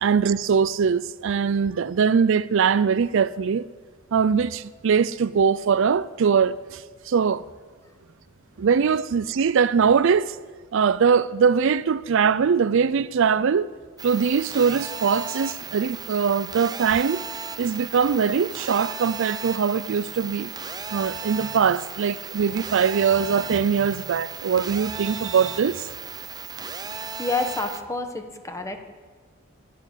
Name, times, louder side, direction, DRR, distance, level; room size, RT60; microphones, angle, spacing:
voice 1, 0.0-3.7 4.1-7.4 8.6-10.4 10.7-13.7 14.0-17.2 17.6-20.5 20.9-25.9, right 6 dB, 65° right, 0.4 m, -22 dB
sound 1, 14.0-27.8, right 5 dB, 20° right, 0.7 m, -36 dB
voice 2, 27.2-28.8, left 2 dB, 15° left, 1.4 m, -28 dB
12.0 x 12.0 x 9.9 m
head